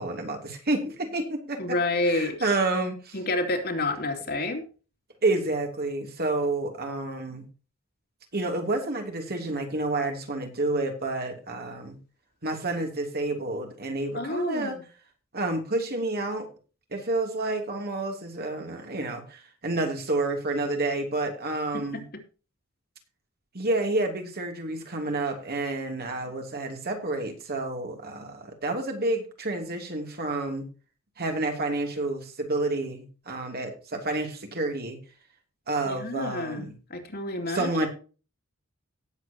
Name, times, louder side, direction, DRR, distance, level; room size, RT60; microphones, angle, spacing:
voice 1, 0.0-1.8 2.0-3.2 5.2-7.5 8.3-12.0 12.4-14.8 15.3-16.5 16.9-22.0 23.5-30.6 31.2-35.0 35.7-36.7 37.5-37.9, right 2 dB, 45° right, 3 dB, 2.9 m, -29 dB
voice 2, 1.6-2.5 3.1-4.7 14.1-14.8 21.7-22.0 35.9-37.9, left 2 dB, 50° left, 4 dB, 2.8 m, -29 dB
18.5 x 7.8 x 2.9 m, 0.35 s
head